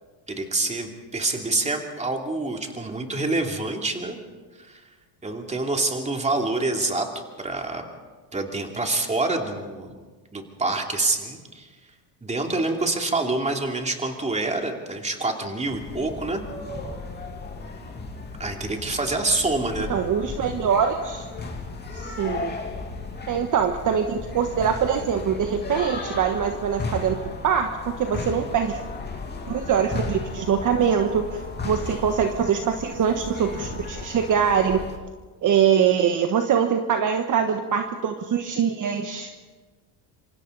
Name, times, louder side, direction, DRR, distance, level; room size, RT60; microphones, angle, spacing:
voice 1, 0.3-4.2 4.7-4.8 5.2-7.1 7.4-7.8 8.3-9.9 10.3-11.7 12.2-16.4 18.4-20.0, right 2 dB, 15° right, 2 dB, 2.9 m, -26 dB
sound 1, 15.7-35.0, left 3 dB, 20° left, 3.1 m, -35 dB
voice 2, 19.9-21.3 21.9-22.6 23.3-27.1 27.4-27.7 28.0-28.8 29.5-34.8 35.4-39.3, right 7 dB, 40° right, 5 dB, 1.4 m, -23 dB
26.5 x 25.0 x 4.1 m, 1.4 s
supercardioid pair, 115°, 48 cm